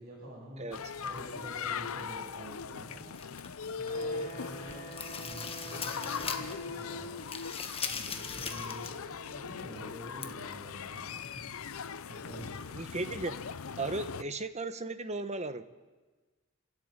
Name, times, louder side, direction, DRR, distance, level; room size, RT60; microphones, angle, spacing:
voice 1, 0.0-0.7 0.9-3.2 3.7-7.1 7.4-11.7 12.1-12.7, right 1 dB, 50° right, -6 dB, 7.4 m, -48 dB
sound 1, 0.7-14.2, left 6 dB, 80° left, 0.6 m, -40 dB
sound 2, 3.1-4.2 4.6-6.6 6.9-9.0 9.3-9.4 10.2-10.3, left 6 dB, 25° left, 1.4 m, -39 dB
Wind instrument woodwind instrument, 3.9-7.4, right 1 dB, 50° left, 5.6 m, -47 dB
voice 2, 12.7-13.4 13.8-15.6, right 2 dB, 30° right, 10 dB, 1.2 m, -35 dB
29.5 x 12.5 x 9.0 m, 1.3 s
head